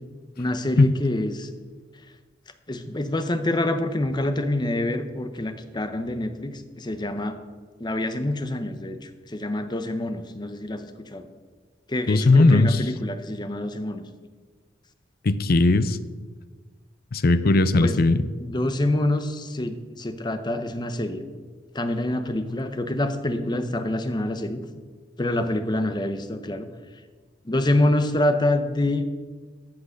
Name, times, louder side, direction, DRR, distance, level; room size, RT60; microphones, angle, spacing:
voice 1, 0.4-1.5 2.7-7.4 7.8-11.2 11.9-14.0 17.8-21.2 21.7-24.6 25.2-26.7 27.4-29.0, left 1 dB, 25° left, 9 dB, 0.8 m, -26 dB
voice 2, 12.1-12.8 15.2-16.0 17.1-18.2, left 2 dB, 55° left, 12 dB, 0.6 m, -18 dB
13.5 x 6.1 x 6.4 m, 1.4 s
head